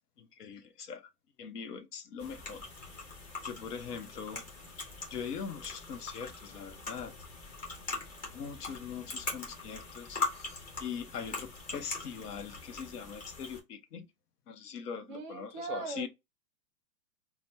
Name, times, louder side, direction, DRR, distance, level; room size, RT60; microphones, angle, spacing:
voice 1, 0.2-1.0 1.4-3.0 3.4-4.4 5.1-7.1 8.3-14.1 14.5-16.1, left 7 dB, 70° left, 0.8 m, -42 dB
sound 1, 2.2-13.6, left 3 dB, 15° left, 0.8 m, -41 dB
voice 2, 15.1-16.1, right 5 dB, 30° right, 0.6 m, -40 dB
2.9 x 2.1 x 3.2 m
hypercardioid pair, 140°, 47 cm